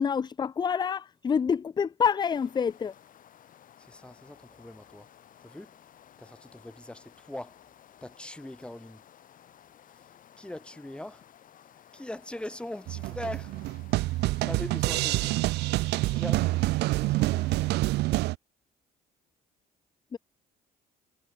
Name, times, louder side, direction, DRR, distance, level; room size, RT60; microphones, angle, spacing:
voice 1, 0.0-2.9 20.1-20.2, left 6 dB, 25° left, 0.5 m, -27 dB
sound 1, 2.3-17.7, left 10 dB, 55° left, 4.6 m, -56 dB
voice 2, 3.8-5.1 5.4-5.7 6.2-7.5 8.0-9.0 10.4-11.2 11.9-13.5 14.4-15.4 16.1-16.6 17.0-17.6, left 1 dB, 5° left, 3.5 m, -41 dB
sound 2, 12.9-18.4, right 19 dB, 85° right, 0.9 m, -27 dB
cardioid pair, 110°, 17 cm